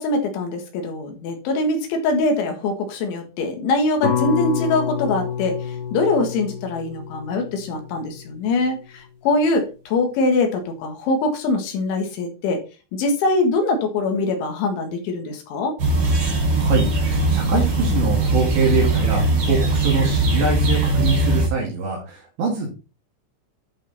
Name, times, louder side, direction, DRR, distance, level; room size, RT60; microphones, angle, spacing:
voice 1, 0.0-5.6 5.9-12.6 12.9-15.8, left 2 dB, 70° left, 4 dB, 3.9 m, -23 dB
sound 1, 4.0-8.3, left 7 dB, 30° left, 2.6 m, -28 dB
sound 2, 15.8-21.5, right 2 dB, 35° right, 3.6 m, -20 dB
voice 2, 16.5-22.7, right 4 dB, 65° right, -2 dB, 4.3 m, -24 dB
11.0 x 5.1 x 4.0 m, 0.32 s
omnidirectional pair, 5.8 m